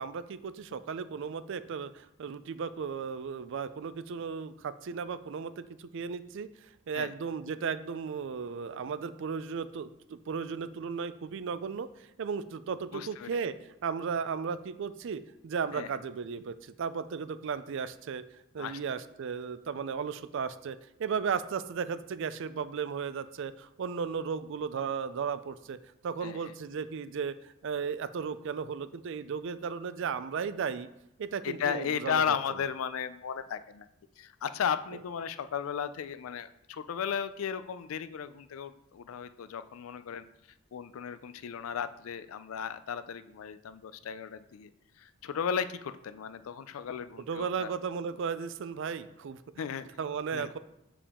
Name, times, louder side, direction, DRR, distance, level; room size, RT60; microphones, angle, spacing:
voice 1, 0.0-6.5 6.9-13.6 13.8-18.2 18.5-25.8 26.0-30.9 31.2-32.4 47.2-49.4 50.0-50.6, right 6 dB, 65° right, 14 dB, 0.4 m, -35 dB
voice 2, 12.9-13.3 15.7-15.9 18.6-18.8 26.2-26.4 31.4-33.9 34.2-40.3 40.7-44.7 45.0-47.7 49.6-49.9 50.3-50.5, left 7 dB, 90° left, 13 dB, 0.4 m, -35 dB
6.9 x 4.9 x 3.6 m, 0.85 s
head